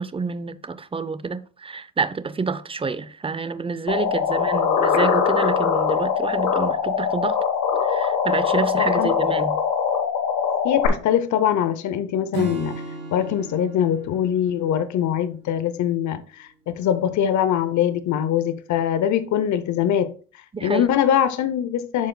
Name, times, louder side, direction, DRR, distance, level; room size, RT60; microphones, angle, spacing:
voice 1, 0.0-7.4 7.8-9.6 20.5-20.8, right 4 dB, 20° right, 0.5 m, -28 dB
sound 1, 3.9-10.9, left 7 dB, 85° left, 1.2 m, -22 dB
voice 2, 8.8-9.1 10.6-12.8 13.1-22.1, left 10 dB, 70° left, 0.7 m, -23 dB
Acoustic guitar / Strum, 12.3-15.8, right 4 dB, 75° right, 2.6 m, -36 dB
11.5 x 4.5 x 2.2 m
cardioid pair, 90°, 30 cm